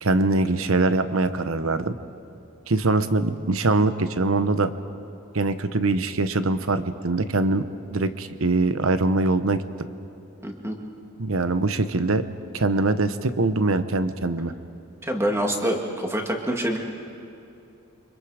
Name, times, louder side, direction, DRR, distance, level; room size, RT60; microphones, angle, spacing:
voice 1, 0.0-1.9 2.7-4.7 5.3-7.6 7.9-9.6 11.2-12.2 12.5-14.5, right 2 dB, 65° right, 11 dB, 1.0 m, -23 dB
voice 2, 10.4-10.8 15.0-16.8, equal, 10° right, 1 dB, 2.2 m, -26 dB
29.5 x 25.0 x 5.0 m, 2.7 s
head